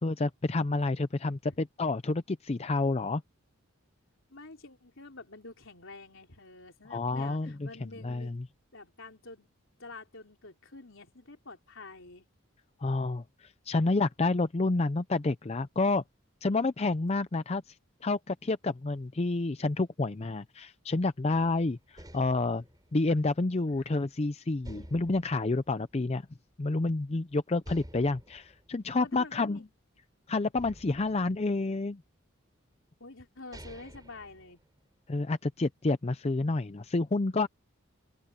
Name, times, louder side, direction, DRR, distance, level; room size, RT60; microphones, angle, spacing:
voice 1, 0.0-3.2 6.9-7.7 8.0-8.4 12.8-16.0 16.4-17.8 18.0-22.6 22.9-26.3 26.6-29.6 30.3-32.0 35.1-37.5, left 3 dB, 30° left, 0.5 m, -29 dB
voice 2, 4.3-8.3 8.7-9.5 9.8-12.3 29.0-29.6 33.0-34.6, left 3 dB, 65° left, 4.2 m, -48 dB
sound 1, 21.3-24.1 24.6-26.6 26.9-27.0 27.6-30.0 30.5-32.1 32.9-33.0 33.3-35.1, equal, 20° right, 4.6 m, -51 dB
open air
head